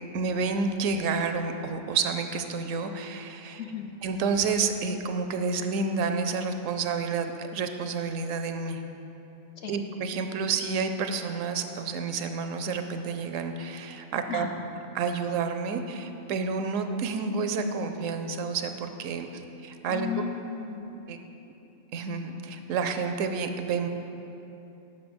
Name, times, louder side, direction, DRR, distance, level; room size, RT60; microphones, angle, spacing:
voice 1, 0.1-3.6 4.0-8.8 9.7-14.5 14.9-20.1 21.1-21.2 21.9-23.9, right 4 dB, 80° right, 7 dB, 1.0 m, -29 dB
voice 2, 3.6-3.9 9.6-9.8 14.3-14.6 19.9-20.9, left 7 dB, 65° left, 4 dB, 0.7 m, -35 dB
7.6 x 5.5 x 6.0 m, 2.9 s
omnidirectional pair, 1.3 m